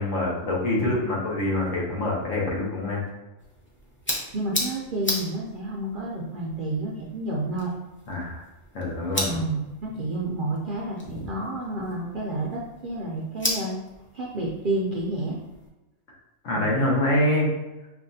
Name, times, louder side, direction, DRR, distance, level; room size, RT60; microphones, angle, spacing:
voice 1, 0.0-3.0 8.1-8.4 8.7-9.4 16.4-17.5, left 1 dB, 70° left, -3 dB, 1.3 m, -25 dB
sound 1, 3.4-15.7, equal, 15° left, 0.4 m, -36 dB
voice 2, 4.3-7.7 9.2-13.8 14.1-15.4 16.5-16.8, right 2 dB, 60° right, -4 dB, 0.6 m, -30 dB
5.1 x 2.3 x 2.6 m, 1.0 s
omnidirectional pair, 1.4 m